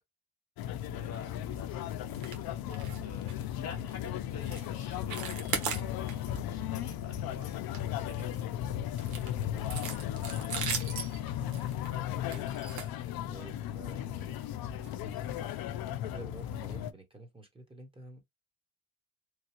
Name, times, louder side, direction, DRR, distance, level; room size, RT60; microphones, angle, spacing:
sound 1, 0.6-16.9, left 11 dB, 70° left, 0.6 m, -36 dB
voice 1, 0.9-2.2 2.6-8.8 11.9-12.5 13.7-14.3, left 5 dB, 45° left, 1.2 m, -50 dB
sound 2, 2.1-2.4 2.7-3.0 3.3-3.5 3.9-4.1 4.5-4.7 5.0-6.4 6.7-6.9 7.3-8.4 9.0-13.6 14.3-14.5 14.8-14.9 15.4-15.5, right 6 dB, 70° right, 1.2 m, -38 dB
voice 2, 9.5-9.8 11.4-11.7 12.3-12.4 13.3-14.4 14.9-18.2, right 2 dB, 15° right, 1.3 m, -50 dB
3.2 x 2.3 x 2.9 m
cardioid pair, 105°, 38 cm